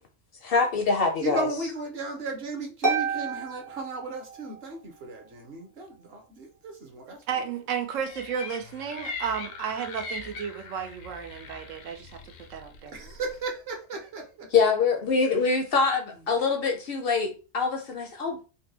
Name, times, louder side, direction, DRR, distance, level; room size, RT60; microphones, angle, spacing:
voice 1, 0.4-1.5 14.5-18.4, left 4 dB, 60° left, 0.7 m, -24 dB
voice 2, 1.2-7.4 12.9-14.5, right 3 dB, 55° right, 1.0 m, -35 dB
Harp, 2.8-4.7, right 4 dB, 30° right, 0.3 m, -30 dB
voice 3, 7.3-12.2 12.5-13.0, right 7 dB, 90° right, 1.0 m, -33 dB
sound 1, 8.1-13.5, left 3 dB, 85° left, 1.0 m, -41 dB
3.9 x 2.2 x 2.7 m
omnidirectional pair, 1.3 m